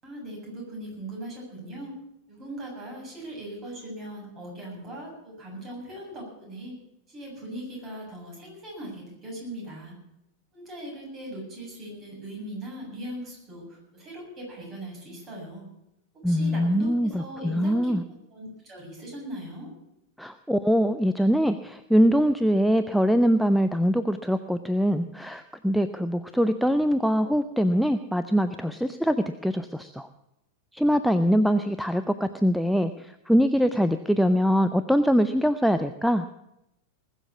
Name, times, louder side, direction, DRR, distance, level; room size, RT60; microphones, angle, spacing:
voice 1, 0.0-1.9 2.3-6.7 7.1-9.9 10.5-15.7 16.3-17.9 18.3-19.7, right 1 dB, 30° right, -2 dB, 7.4 m, -39 dB
voice 2, 16.2-18.0 20.2-30.1 30.7-36.3, equal, ahead, 11 dB, 0.6 m, -23 dB
20.0 x 7.4 x 8.3 m, 0.85 s
figure-of-eight pair, 90°, 0 cm